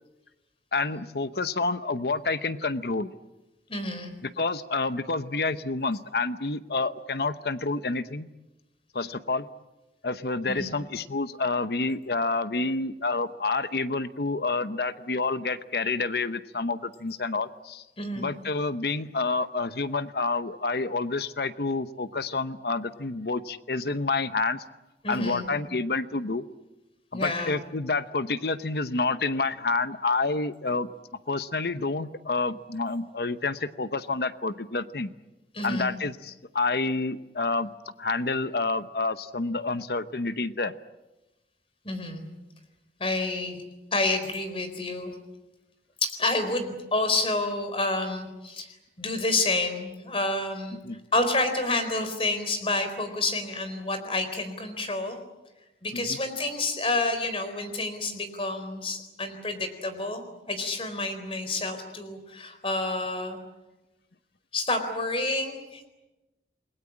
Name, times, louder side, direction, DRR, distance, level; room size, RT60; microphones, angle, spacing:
voice 1, 0.7-3.1 4.2-8.3 8.9-9.5 10.0-17.8 18.2-24.6 25.1-26.4 27.1-30.9 31.3-35.1 35.6-37.7 38.0-40.7 50.8-51.0 55.9-56.2, left 3 dB, 60° left, 12 dB, 0.9 m, -28 dB
voice 2, 3.7-4.1 10.5-10.7 18.0-18.3 25.0-25.5 27.1-27.6 35.5-35.9 41.8-42.3 43.0-43.6 43.9-45.2 46.0-48.7 49.0-50.8 51.1-55.2 55.8-63.4 64.5-65.9, left 2 dB, 30° left, 9 dB, 4.1 m, -29 dB
29.0 x 21.5 x 8.6 m, 1.0 s
head